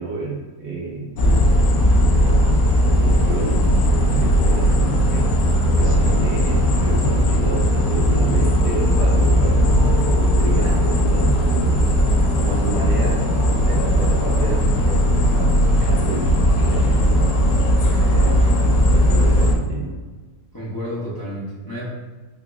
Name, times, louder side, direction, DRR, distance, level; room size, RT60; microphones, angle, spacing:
voice 1, 0.0-1.1 1.6-5.3 5.7-11.8 12.4-17.4 18.0-19.9, right 3 dB, 85° right, -3 dB, 1.4 m, -30 dB
sound 1, 1.2-19.5, equal, 75° left, 1.0 m, -17 dB
voice 2, 1.2-1.6 5.8-6.2 15.7-15.9 20.5-21.8, equal, 30° left, -8 dB, 0.4 m, -31 dB
3.6 x 2.0 x 3.4 m, 1.3 s
omnidirectional pair, 1.6 m